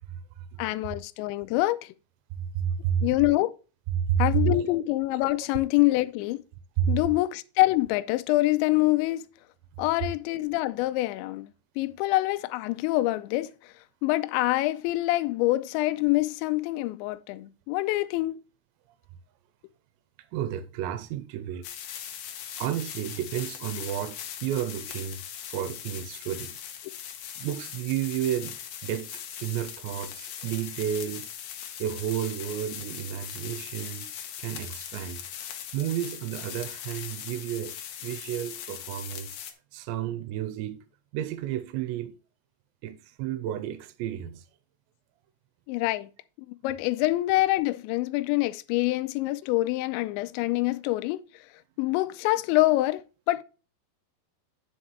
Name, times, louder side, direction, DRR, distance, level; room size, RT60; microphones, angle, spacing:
voice 1, 0.6-1.8 3.0-3.5 4.2-6.4 6.9-9.2 9.8-11.5 11.8-13.5 14.0-18.3 45.7-46.1 46.6-51.2 51.8-53.0 53.3-53.4, left 18 dB, 85° left, 2.8 m, -25 dB
voice 2, 2.4-3.1 3.9-4.6 6.8-7.0 20.3-21.7 22.6-25.2 25.5-26.6 27.4-28.6 28.8-29.1 29.4-31.3 31.8-34.1 34.4-35.2 35.7-37.7 38.0-39.3 39.7-40.8 41.1-42.1 42.8-44.4, right 10 dB, 90° right, 2.9 m, -31 dB
sound 1, 21.6-39.5, left 9 dB, 70° left, 2.5 m, -40 dB
9.9 x 6.5 x 3.2 m
omnidirectional pair, 5.2 m